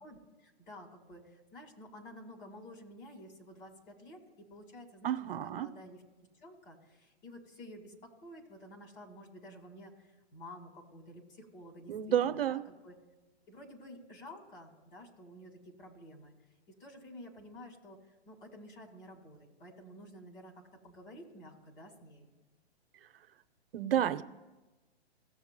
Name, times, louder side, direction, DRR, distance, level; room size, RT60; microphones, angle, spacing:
voice 1, 0.0-6.0 6.4-11.9 12.2-12.9 13.5-16.3 16.8-18.0 18.3-22.3, left 1 dB, 50° left, 2 dB, 2.3 m, -51 dB
voice 2, 5.0-5.7 11.9-12.6 23.7-24.2, right 10 dB, 60° right, 12 dB, 0.7 m, -30 dB
16.5 x 6.9 x 2.2 m, 1.1 s
hypercardioid pair, 145°, 33 cm